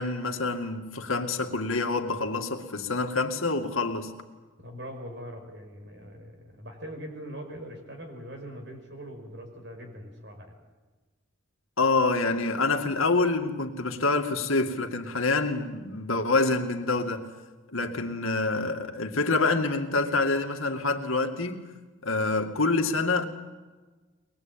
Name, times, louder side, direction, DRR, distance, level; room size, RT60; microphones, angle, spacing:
voice 1, 0.0-4.1 11.8-17.3 17.7-21.6 22.0-23.3, left 3 dB, 85° left, 2.3 m, -26 dB
voice 2, 4.6-10.5, equal, 55° right, 5.8 m, -42 dB
23.5 x 21.0 x 8.9 m
head